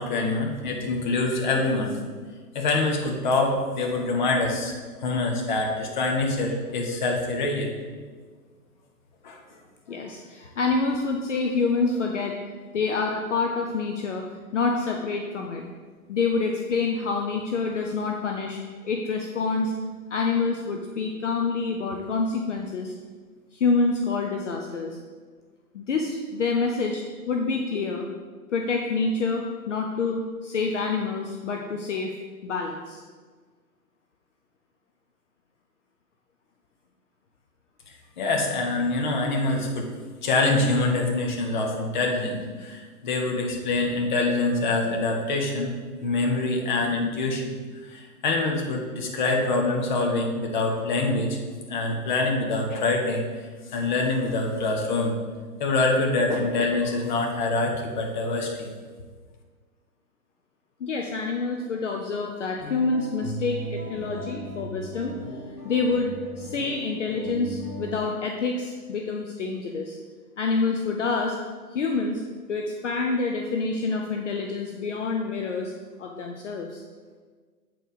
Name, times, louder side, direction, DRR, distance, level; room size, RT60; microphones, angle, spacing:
voice 1, 0.0-1.9 2.5-4.7 5.0-7.7 9.2-9.4 38.2-39.9 40.2-45.7 46.0-47.5 47.9-51.4 51.7-53.2 53.7-55.1 55.6-58.7, left 2 dB, 30° left, 1 dB, 1.0 m, -25 dB
voice 2, 9.9-12.4 12.7-14.3 14.5-15.6 16.1-19.7 20.1-22.9 23.5-25.0 25.7-28.1 28.5-32.1 32.4-33.0 60.8-65.2 65.6-70.0 70.4-71.3 71.7-72.2 72.5-75.7 76.0-76.8, left 4 dB, 50° left, 2 dB, 0.7 m, -27 dB
sound 1, 62.6-67.9, right 1 dB, ahead, 2.4 m, -37 dB
7.7 x 4.7 x 5.1 m, 1.5 s
hypercardioid pair, 160°, 47 cm